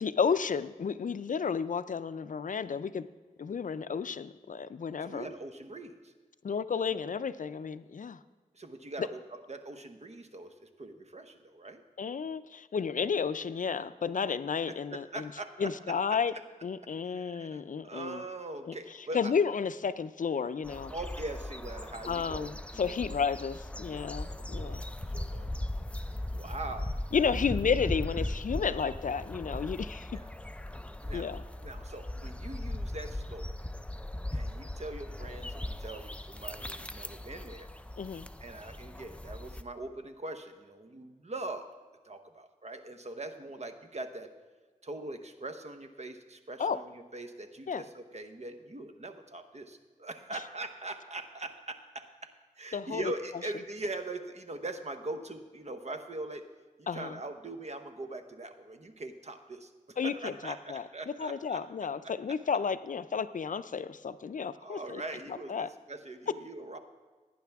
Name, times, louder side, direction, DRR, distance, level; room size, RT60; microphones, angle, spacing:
voice 1, 0.0-3.1 3.4-5.3 6.4-8.2 12.0-15.3 15.6-16.3 16.6-18.2 18.6-18.8 19.1-20.9 22.1-24.8 27.1-30.1 31.1-31.4 38.0-38.3 46.6-46.8 47.7-47.8 52.7-53.1 56.9-57.2 60.0-65.0 65.5-65.7, left 6 dB, 65° left, 14 dB, 0.4 m, -32 dB
voice 2, 5.0-6.1 8.5-11.8 14.7-15.9 17.0-19.3 20.9-23.0 23.9-24.1 24.5-24.8 25.1-25.5 26.1-26.9 30.1-30.3 31.0-31.3 31.6-33.6 34.3-37.7 38.4-41.7 42.0-44.3 44.8-56.4 56.8-61.6 64.5-66.8, right 2 dB, 50° right, 7 dB, 1.0 m, -42 dB
sound 1, 20.6-39.6, left 1 dB, 10° left, 0.5 m, -38 dB
17.5 x 9.3 x 3.5 m, 1.4 s
wide cardioid pair, 70°, 15 cm